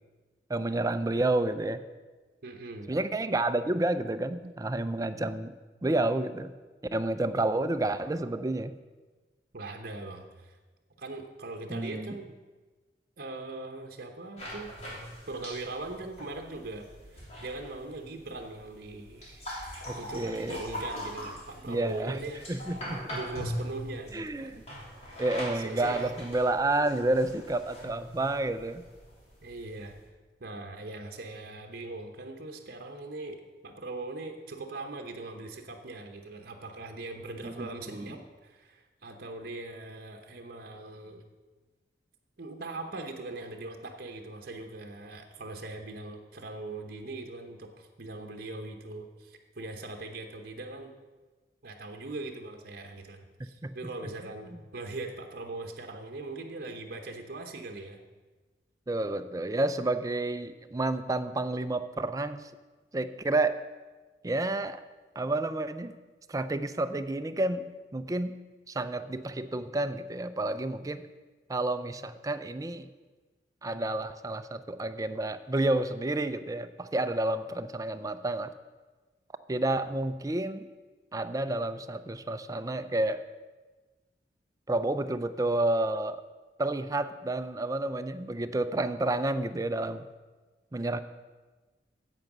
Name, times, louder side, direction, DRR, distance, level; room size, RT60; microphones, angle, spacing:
voice 1, 0.5-1.8 2.9-5.5 5.8-6.5 6.9-8.7 11.7-12.1 19.9-20.6 21.7-22.2 22.5-23.2 24.1-24.5 25.2-28.8 37.4-38.2 53.6-53.7 58.9-62.5 62.9-63.6 64.2-64.8 65.2-65.9 66.3-68.4 68.7-71.0 71.5-72.9 73.6-78.5 79.5-80.7 81.1-83.2 84.7-86.2 86.6-90.0 90.7-91.0, right 2 dB, 20° right, 11 dB, 0.4 m, -30 dB
voice 2, 2.4-2.9 9.5-10.6 11.0-12.3 13.2-14.7 15.3-19.5 20.0-22.4 23.1-24.6 25.1-25.2 25.5-26.0 29.4-30.0 30.4-41.2 42.4-50.9 51.6-58.0, right 2 dB, 55° right, 4 dB, 0.9 m, -41 dB
sound 1, 14.4-30.1, equal, 40° left, 3.1 m, -42 dB
9.2 x 7.9 x 6.1 m, 1.3 s
head